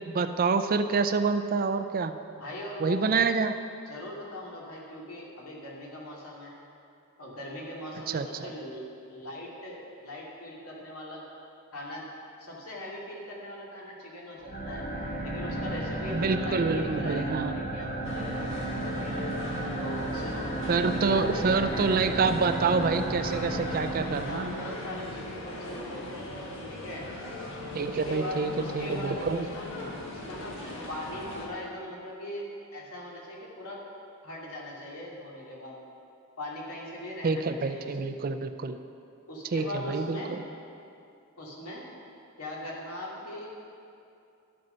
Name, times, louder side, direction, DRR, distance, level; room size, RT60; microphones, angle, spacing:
voice 1, 0.0-2.2 2.8-3.5 8.1-8.3 16.1-17.5 20.7-24.5 27.7-29.5 37.2-38.8 39.5-40.4, right 4 dB, 40° right, 9 dB, 0.4 m, -27 dB
voice 2, 2.4-3.1 3.9-6.5 7.2-11.2 11.7-12.0 12.4-14.8 15.2-19.1 19.8-20.5 20.9-21.7 24.0-26.2 26.7-27.0 27.8-30.5 30.9-32.4 32.7-33.8 34.2-35.8 36.4-38.1 39.3-40.3 41.4-41.8 42.4-43.5, left 1 dB, 75° left, -3 dB, 2.4 m, -40 dB
sound 1, 14.4-24.9, right 2 dB, 40° left, 1.7 m, -34 dB
sound 2, 18.0-31.5, left 1 dB, 60° left, 1.5 m, -39 dB
12.0 x 7.8 x 5.6 m, 2.6 s
head